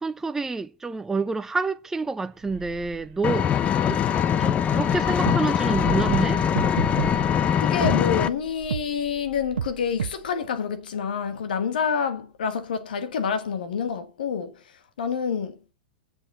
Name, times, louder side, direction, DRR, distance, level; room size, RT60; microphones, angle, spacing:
voice 1, 0.0-3.5 3.9-4.0 4.4-6.4, right 3 dB, 10° right, 0.5 m, -28 dB
sound 1, 2.3-10.4, right 10 dB, 55° right, 2.3 m, -40 dB
Engine, 3.2-8.3, left 9 dB, 25° left, 0.7 m, -22 dB
sound 2, 4.5-4.6 5.3-5.4 6.1-6.3 6.6-7.1 7.8-8.0 8.7-8.8 9.6-9.7 10.0-10.1, right 8 dB, 80° right, 0.5 m, -27 dB
voice 2, 7.6-14.6 15.0-15.6, left 6 dB, 70° left, 1.6 m, -27 dB
7.7 x 7.7 x 6.9 m
hypercardioid pair, 100°, 5 cm